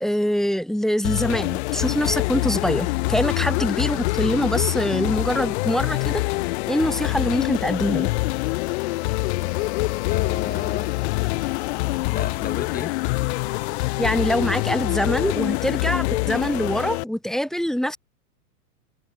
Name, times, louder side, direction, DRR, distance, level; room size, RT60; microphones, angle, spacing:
voice 1, 0.0-6.2 6.7-8.1 14.0-18.0, equal, ahead, 0.8 m, -24 dB
sound 1, 1.0-17.0, left 23 dB, 40° left, 1.3 m, -25 dB
sound 2, 5.6-6.3 6.8-7.5 8.1-14.9, right 15 dB, 30° right, 6.4 m, -53 dB
voice 2, 10.1-11.2 12.1-12.9 14.5-14.6, left 9 dB, 20° left, 3.8 m, -33 dB
hypercardioid pair, 135°, 48 cm